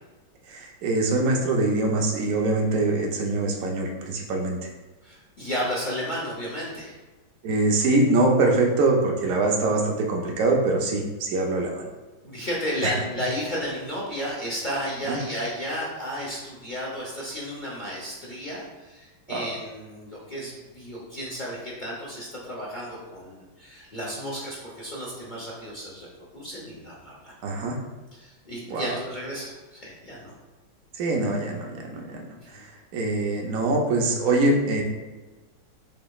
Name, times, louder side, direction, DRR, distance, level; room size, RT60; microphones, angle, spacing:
voice 1, 0.5-4.6 7.4-11.9 15.1-15.2 19.3-19.5 27.4-27.8 28.7-28.8 31.0-32.3 32.5-32.6 32.9-34.8, right 2 dB, 60° right, 0 dB, 0.9 m, -23 dB
voice 2, 5.0-6.9 12.2-26.1 26.3-27.3 28.1-30.3, equal, 55° left, -6 dB, 0.5 m, -33 dB
7.3 x 3.0 x 2.3 m, 1.2 s
omnidirectional pair, 2.3 m